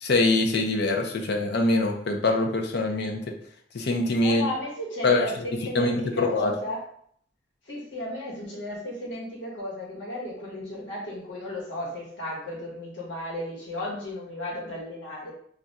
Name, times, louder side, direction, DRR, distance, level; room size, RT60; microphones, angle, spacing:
voice 1, 0.0-3.2 3.7-4.5 5.0-5.3 5.7-6.5, left 2 dB, 65° left, 3 dB, 0.5 m, -23 dB
voice 2, 4.2-6.8 7.7-15.3, left 1 dB, 85° left, -5 dB, 1.2 m, -34 dB
2.4 x 2.3 x 4.0 m, 0.65 s
head